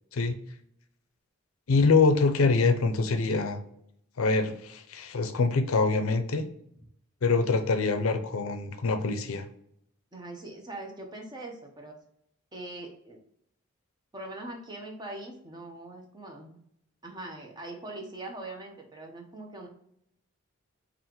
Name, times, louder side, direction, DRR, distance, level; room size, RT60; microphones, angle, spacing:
voice 1, 1.7-3.6 4.2-6.5 7.2-9.4, left 4 dB, 80° left, 7 dB, 0.5 m, -24 dB
voice 2, 10.1-12.0 12.5-13.2 14.1-16.6 17.0-19.7, right 2 dB, 20° right, 2 dB, 0.8 m, -42 dB
5.5 x 2.5 x 3.0 m, 0.72 s
head